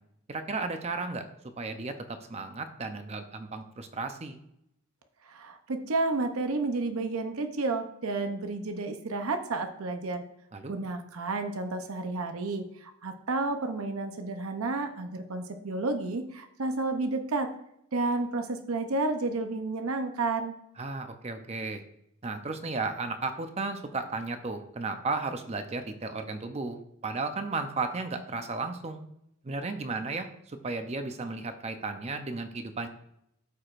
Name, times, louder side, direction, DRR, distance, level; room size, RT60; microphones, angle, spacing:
voice 1, 0.3-1.2 1.6-4.4 10.5-10.8 20.8-21.8 22.2-26.8 27.0-29.1 29.4-32.9, right 3 dB, 30° right, 7 dB, 0.6 m, -34 dB
voice 2, 5.3-10.2 10.7-17.5 17.9-20.5, right 3 dB, 80° right, 7 dB, 0.7 m, -31 dB
13.0 x 4.8 x 2.5 m, 0.78 s
head